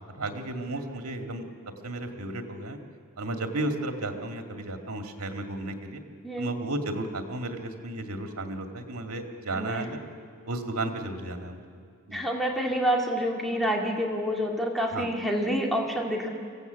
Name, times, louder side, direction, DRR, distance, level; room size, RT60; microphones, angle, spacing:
voice 1, 0.2-1.5 1.8-2.8 3.2-6.0 6.4-10.0 10.4-11.6 12.1-12.3 14.9-15.1, right 2 dB, 85° right, 4 dB, 2.2 m, -33 dB
voice 2, 9.5-9.9 12.1-16.3, equal, ahead, -1 dB, 2.2 m, -28 dB
25.0 x 16.0 x 8.1 m, 2.2 s
head